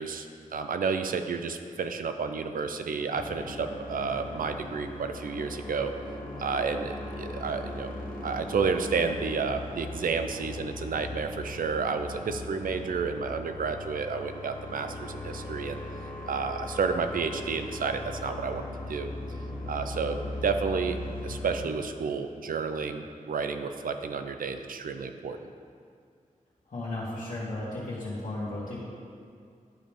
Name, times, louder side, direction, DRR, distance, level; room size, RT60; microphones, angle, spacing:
voice 1, 0.0-5.9 6.4-7.9 8.2-15.8 16.3-19.1 19.7-25.4, right 5 dB, 90° right, 7 dB, 0.5 m, -31 dB
sound 1, 3.1-21.7, left 2 dB, 85° left, 0.9 m, -39 dB
voice 2, 26.7-28.8, left 2 dB, 70° left, -11 dB, 1.7 m, -34 dB
11.5 x 5.1 x 3.6 m, 2.3 s
wide cardioid pair, 120°, 14 cm